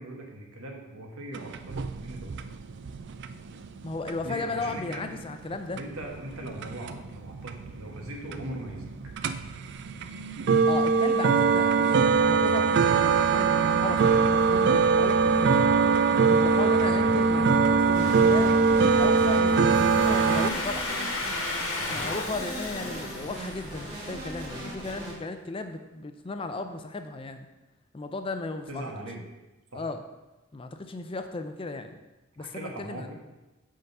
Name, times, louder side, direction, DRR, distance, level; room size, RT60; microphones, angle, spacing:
voice 1, 0.0-2.3 4.2-5.1 5.8-8.9 17.0-17.2 21.8-22.0 28.7-29.2 29.7-29.8 32.4-33.2, right 1 dB, 85° right, 0 dB, 1.5 m, -40 dB
sound 1, 1.3-20.5, right 5 dB, 55° right, 0.4 m, -23 dB
voice 2, 3.8-5.8 10.7-12.7 13.0-15.6 16.3-20.9 21.9-27.5 27.9-28.8 29.7-30.0 30.5-32.0 32.4-33.0, left 3 dB, 25° left, 7 dB, 0.4 m, -35 dB
sound 2, 17.9-25.1, right 1 dB, 25° right, 1.8 m, -39 dB
Domestic sounds home sounds, 19.5-24.3, left 2 dB, 70° left, 1.4 m, -34 dB
8.0 x 3.8 x 5.4 m, 1.1 s
head